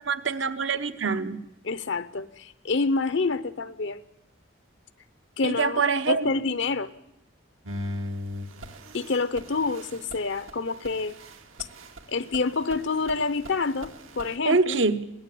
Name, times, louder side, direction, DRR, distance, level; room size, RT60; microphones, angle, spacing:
voice 1, 0.0-1.4 5.4-6.3 14.4-15.1, right 4 dB, 65° right, 1.0 m, -25 dB
voice 2, 1.6-4.0 5.4-6.9 8.9-11.1 12.1-14.8, left 4 dB, 60° left, 0.7 m, -27 dB
sound 1, 7.7-14.4, left 1 dB, 90° right, 2.4 m, -39 dB
22.0 x 17.5 x 8.4 m
head